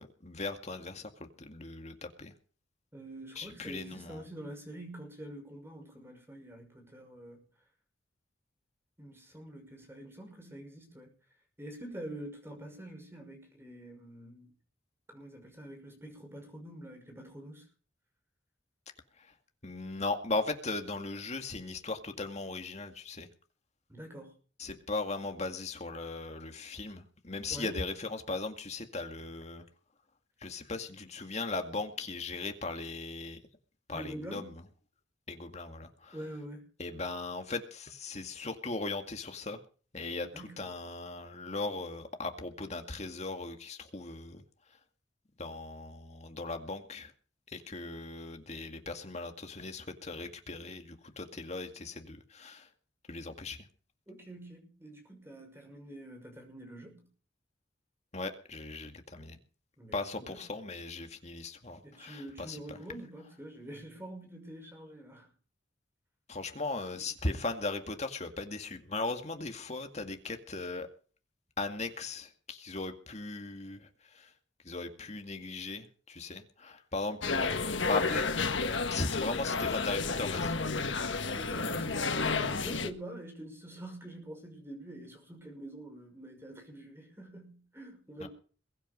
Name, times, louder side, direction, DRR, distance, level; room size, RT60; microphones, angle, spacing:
voice 1, 0.0-2.3 3.4-4.2 19.2-19.3 19.6-23.3 24.6-29.6 30.4-33.4 33.9-34.5 35.3-36.2 36.8-39.6 39.9-44.4 45.4-47.1 47.5-52.7 53.1-53.7 58.1-59.4 59.9-62.8 66.3-70.9 71.6-74.3 74.6-78.3 78.9-80.5 88.2-88.3, left 3 dB, 35° left, 6 dB, 2.1 m, -38 dB
voice 2, 2.9-7.4 9.0-11.1 11.6-14.5 15.1-17.7 23.9-24.3 27.5-27.9 33.9-34.5 36.1-36.6 40.1-40.7 54.1-57.0 59.8-60.5 61.8-65.3 81.3-88.3, right 1 dB, 15° right, 3 dB, 5.9 m, -46 dB
sound 1, 77.2-82.9, left 4 dB, 85° left, 1.5 m, -31 dB
22.0 x 9.1 x 5.3 m, 0.40 s
head